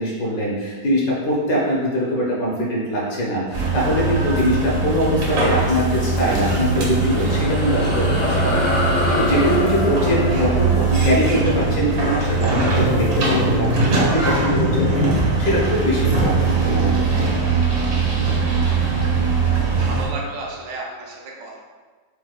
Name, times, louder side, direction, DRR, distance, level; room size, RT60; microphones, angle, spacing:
voice 1, 0.0-17.5, equal, 65° left, -4 dB, 1.0 m, -23 dB
sound 1, 3.5-20.1, right 2 dB, 55° right, 1.0 m, -20 dB
sound 2, 6.6-13.4, left 1 dB, 40° left, 0.6 m, -27 dB
voice 2, 19.4-21.6, right 2 dB, 80° right, -2 dB, 1.3 m, -33 dB
4.2 x 2.1 x 2.3 m, 1.4 s
omnidirectional pair, 1.9 m